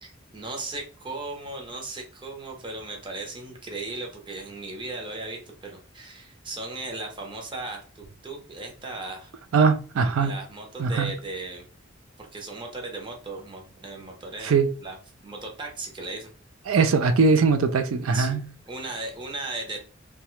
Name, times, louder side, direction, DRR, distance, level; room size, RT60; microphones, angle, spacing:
voice 1, 0.0-9.3 10.2-11.6 12.2-15.0 15.2-16.3 18.1-18.4 18.7-19.8, right 2 dB, 25° right, 0.7 m, -37 dB
voice 2, 9.5-10.3 10.8-11.1 14.4-14.7 16.7-18.4, right 4 dB, 90° right, 0.4 m, -21 dB
2.8 x 2.2 x 3.0 m
head